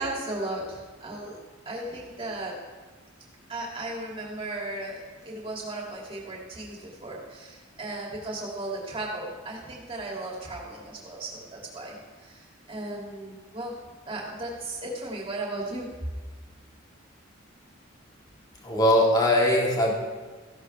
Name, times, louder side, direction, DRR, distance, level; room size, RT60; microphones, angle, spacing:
voice 1, 0.0-1.4 1.6-2.6 3.5-13.7 14.1-15.9, right 2 dB, 30° right, -3 dB, 2.8 m, -36 dB
voice 2, 18.6-19.9, left 1 dB, 20° left, -2 dB, 2.2 m, -21 dB
15.0 x 11.5 x 3.5 m, 1.4 s
head